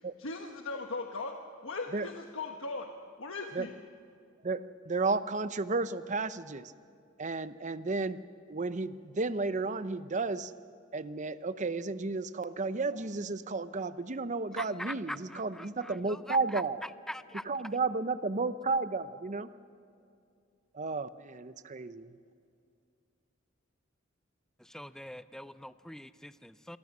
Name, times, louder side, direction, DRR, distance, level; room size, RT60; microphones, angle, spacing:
voice 1, 0.2-1.3 1.6-2.9 3.2-3.7, left 3 dB, 80° left, 3 dB, 1.3 m, -38 dB
voice 2, 4.4-6.7 7.2-8.2 8.5-10.5 10.9-16.8 17.5-19.5 20.7-22.2, right 3 dB, 40° right, 13 dB, 0.7 m, -33 dB
voice 3, 14.6-17.4 24.6-26.8, left 1 dB, 5° left, 13 dB, 0.5 m, -43 dB
27.0 x 23.0 x 6.1 m, 2.4 s
head